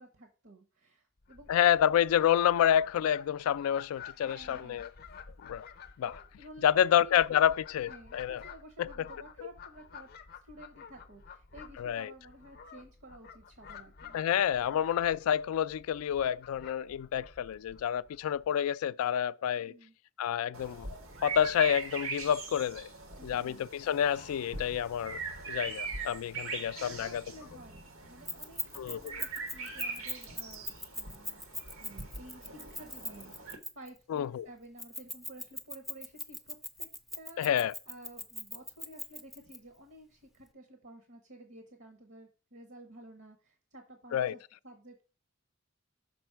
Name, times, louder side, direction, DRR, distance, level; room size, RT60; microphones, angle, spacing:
voice 1, 0.0-1.5 4.2-4.9 6.2-7.5 7.9-10.1 10.4-14.2 19.6-19.9 23.2-23.7 26.2-26.4 26.7-31.5 31.8-36.9 37.1-37.4 37.9-45.0, right 1 dB, 65° right, 1.0 m, -52 dB
Fowl, 1.2-18.5, left 6 dB, 45° left, 0.6 m, -51 dB
voice 2, 1.5-4.9 5.4-5.7 6.0-6.2 6.6-8.4 8.8-9.1 11.8-12.1 14.1-19.7 20.2-20.9 21.2-22.9 23.2-25.2 25.5-27.2 28.8-29.0 34.1-34.5 37.4-37.7 44.1-44.4, left 9 dB, 85° left, 0.3 m, -28 dB
sound 1, 20.5-33.6, right 4 dB, 80° right, 1.2 m, -42 dB
Keys jangling, 28.3-34.0 34.8-39.6, left 1 dB, ahead, 0.4 m, -40 dB
6.0 x 4.3 x 4.5 m
head